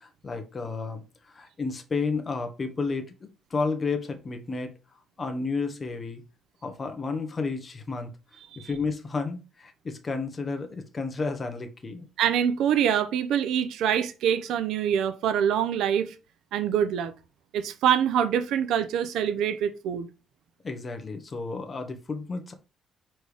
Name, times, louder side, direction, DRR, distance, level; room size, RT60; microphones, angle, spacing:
voice 1, 0.0-4.7 5.2-6.2 6.6-8.1 8.6-12.1 20.6-22.5, left 4 dB, 25° left, 1.1 m, -32 dB
voice 2, 12.2-16.1 16.5-17.1 17.5-20.1, right 9 dB, 85° right, 0.6 m, -25 dB
4.8 x 4.5 x 5.0 m
cardioid pair, 145°, 0 cm